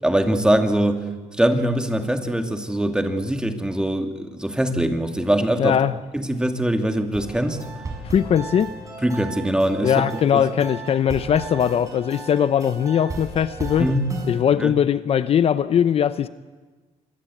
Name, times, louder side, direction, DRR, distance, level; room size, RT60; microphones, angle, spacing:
voice 1, 0.0-1.1 1.4-5.8 6.1-7.6 9.0-10.0 10.3-10.5 13.8-14.1 14.6-14.7, right 1 dB, 5° right, 5 dB, 2.5 m, -22 dB
voice 2, 5.6-5.9 8.0-8.7 9.8-13.9 14.3-16.3, left 9 dB, 50° left, 13 dB, 0.8 m, -20 dB
sound 1, 7.1-14.4, right 3 dB, 25° right, 6.8 m, -35 dB
26.5 x 22.0 x 8.6 m, 1.3 s
cardioid pair, 120°, 13 cm